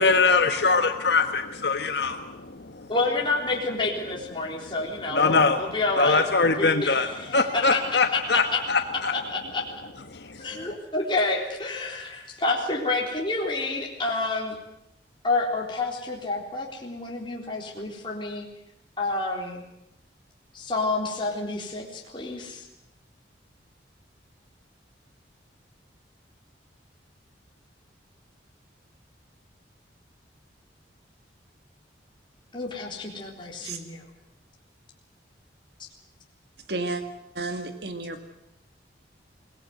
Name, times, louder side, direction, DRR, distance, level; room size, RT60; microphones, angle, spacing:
voice 1, 0.0-2.9 5.1-5.6 6.0-7.1 7.3-8.4 8.7-9.1 10.1-10.5, left 4 dB, 65° left, 6 dB, 1.4 m, -22 dB
voice 2, 2.9-7.8 8.1-8.6 9.1-9.6 10.4-14.6 15.2-18.4 19.0-19.6 20.5-22.7 32.5-34.0, left 3 dB, 25° left, -2 dB, 3.8 m, -29 dB
voice 3, 36.7-37.0 37.4-38.2, right 2 dB, 60° right, 8 dB, 1.8 m, -31 dB
24.0 x 19.0 x 9.4 m, 0.84 s
head